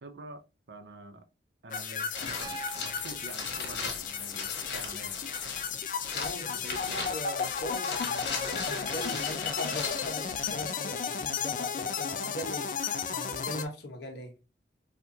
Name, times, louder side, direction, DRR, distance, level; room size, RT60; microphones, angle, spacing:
voice 1, 0.0-1.3 1.6-5.3 6.5-7.1, right 2 dB, 70° right, 0.5 m, -47 dB
sound 1, 1.7-13.7, left 7 dB, 45° left, 0.3 m, -34 dB
sound 2, 2.1-10.6, left 4 dB, 90° left, 1.2 m, -39 dB
Piano, 2.4-6.4 8.0-8.1, right 4 dB, 20° right, 1.0 m, -49 dB
voice 2, 6.1-12.7 13.1-14.3, left 1 dB, 70° left, 1.0 m, -40 dB
4.2 x 2.4 x 2.6 m
head